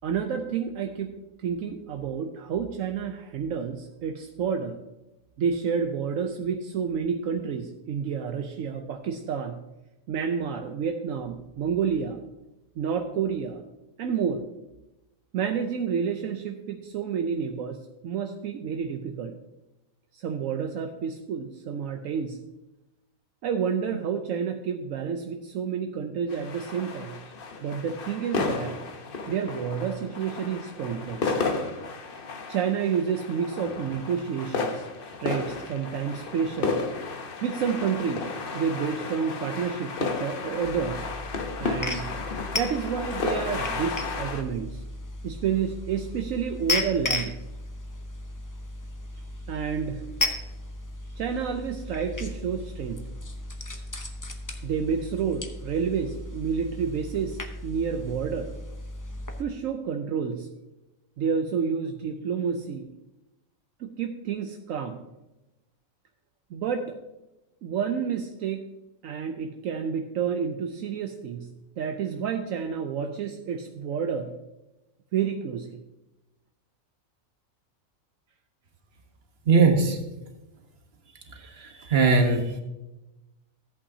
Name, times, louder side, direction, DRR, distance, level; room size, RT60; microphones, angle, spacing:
voice 1, 0.0-1.1 1.4-4.8 5.4-9.6 10.1-12.2 12.8-13.6 14.0-14.4 15.3-19.3 20.1-22.4 23.4-27.2 27.6-28.8 29.3-31.4 32.5-34.9 35.2-36.8 37.4-38.3 38.5-41.1 41.6-42.1 42.5-44.8 45.2-47.3 49.5-50.0 51.2-53.0 54.6-58.5 59.4-60.5 61.2-62.9 63.8-65.0 66.5-67.0 67.6-68.6 69.0-71.5 71.8-74.3 75.1-75.8, right 7 dB, 75° right, 5 dB, 1.0 m, -29 dB
sound 1, 26.3-44.4, left 4 dB, 45° left, 0.9 m, -33 dB
sound 2, 40.6-59.4, left 2 dB, 20° left, 0.6 m, -35 dB
voice 2, 79.5-80.0 81.6-82.6, right 4 dB, 50° right, 3 dB, 1.4 m, -20 dB
14.5 x 8.3 x 2.7 m, 1.0 s
omnidirectional pair, 1.4 m